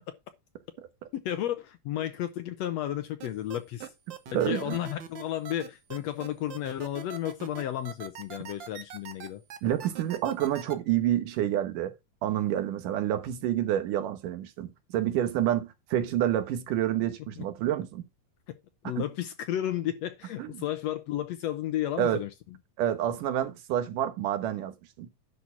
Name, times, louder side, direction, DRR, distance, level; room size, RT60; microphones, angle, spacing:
voice 1, 1.2-3.9 4.3-9.4 17.4-17.5 18.5-18.6 18.8-22.3, left 12 dB, 70° left, 1.7 m, -33 dB
sound 1, 3.2-10.7, right 7 dB, 65° right, 1.1 m, -42 dB
voice 2, 4.3-4.8 9.6-12.0 12.2-18.0 19.0-19.1 20.4-20.6 22.0-22.2 22.8-25.1, right 11 dB, 85° right, 2.7 m, -28 dB
10.5 x 4.3 x 5.8 m
omnidirectional pair, 3.6 m